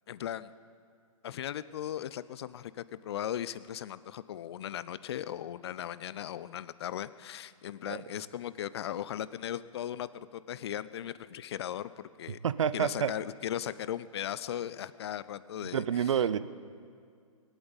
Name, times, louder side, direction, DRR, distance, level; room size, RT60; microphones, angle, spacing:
voice 1, 0.1-0.5 1.2-12.4 12.7-15.8, left 11 dB, 45° left, 16 dB, 0.5 m, -37 dB
voice 2, 12.4-13.1 15.7-16.4, right 8 dB, 60° right, 15 dB, 0.7 m, -28 dB
20.5 x 8.2 x 8.2 m, 2.1 s
figure-of-eight pair, 130°, 18 cm